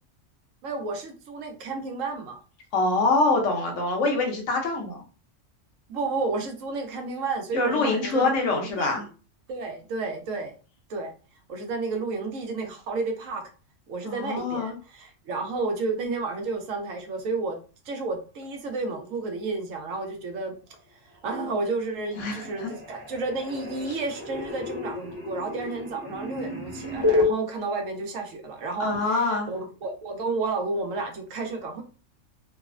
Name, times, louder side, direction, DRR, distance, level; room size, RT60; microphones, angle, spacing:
voice 1, 0.6-2.4 5.9-9.1 9.5-10.6 10.9-11.1 11.5-13.4 13.9-17.6 17.9-20.6 21.2-31.8, right 3 dB, 80° right, 4 dB, 1.0 m, -31 dB
voice 2, 2.7-5.0 7.5-9.0 14.0-14.7 22.2-22.7 28.8-29.5, left 3 dB, 70° left, 2 dB, 1.1 m, -25 dB
sound 1, 21.5-21.9 22.1-27.3, left 3 dB, 30° left, 0.6 m, -30 dB
3.1 x 2.0 x 2.4 m, 0.36 s
omnidirectional pair, 1.3 m